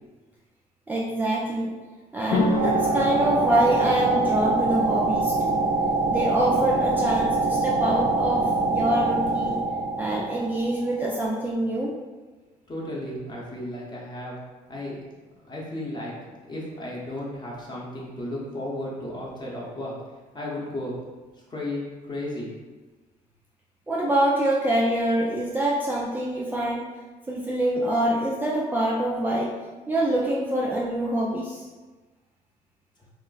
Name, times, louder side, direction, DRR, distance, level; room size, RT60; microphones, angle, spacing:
voice 1, 0.9-1.7 2.1-5.6 6.1-9.6 10.0-11.9 23.9-26.9 27.3-29.6 29.9-31.6, right 1 dB, 10° right, -4 dB, 0.3 m, -25 dB
sound 1, 2.3-9.6, left 2 dB, 85° left, 0.5 m, -32 dB
sound 2, 2.6-11.2, right 3 dB, 85° right, 0.5 m, -24 dB
voice 2, 12.7-14.4 14.7-15.0 15.5-16.1 16.5-19.9 20.3-21.0 21.5-22.5, left 1 dB, 30° left, -4 dB, 0.8 m, -34 dB
2.3 x 2.1 x 3.8 m, 1.3 s
cardioid pair, 115°, 15 cm